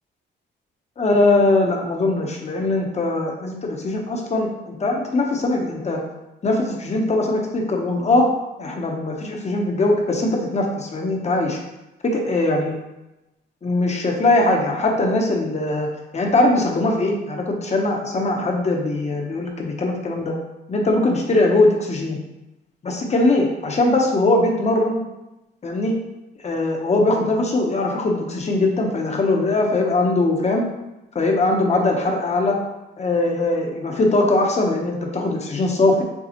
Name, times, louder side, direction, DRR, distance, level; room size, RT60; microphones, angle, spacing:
voice 1, 1.0-6.0 6.4-8.3 8.6-11.6 12.0-12.8 13.6-20.3 20.7-22.2 22.8-25.0 25.6-25.9 26.4-30.6 31.1-32.6 33.0-36.0, left 2 dB, 35° left, 1 dB, 0.9 m, -21 dB
6.9 x 2.3 x 2.9 m, 0.96 s
cardioid pair, 90°, 20 cm